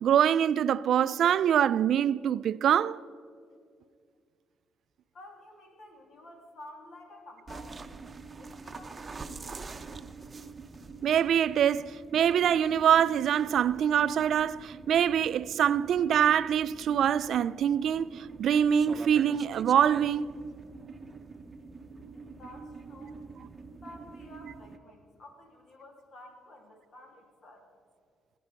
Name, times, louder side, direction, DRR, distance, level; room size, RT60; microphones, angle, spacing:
voice 1, 0.0-3.0 11.0-20.2, right 9 dB, 70° right, 0.3 m, -24 dB
voice 2, 5.1-7.9 8.4-9.5 22.1-23.2 23.7-27.6, left 1 dB, 60° left, 2.9 m, -51 dB
sound 1, 7.5-24.8, right 4 dB, 30° right, 0.7 m, -45 dB
17.5 x 10.0 x 5.3 m
cardioid pair, 90°, 0 cm